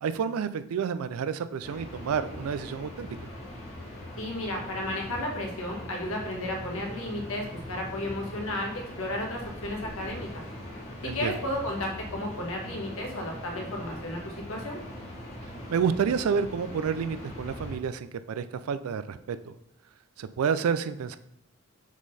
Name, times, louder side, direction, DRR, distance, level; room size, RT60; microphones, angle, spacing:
voice 1, 0.0-3.1 11.0-11.3 15.7-19.5 20.2-21.2, right 6 dB, 80° right, 12 dB, 0.3 m, -29 dB
sound 1, 1.6-17.7, left 1 dB, 30° left, 1.2 m, -41 dB
voice 2, 4.2-10.3 11.1-14.8, left 1 dB, 75° left, 1 dB, 1.3 m, -33 dB
6.1 x 3.8 x 4.0 m, 0.76 s
head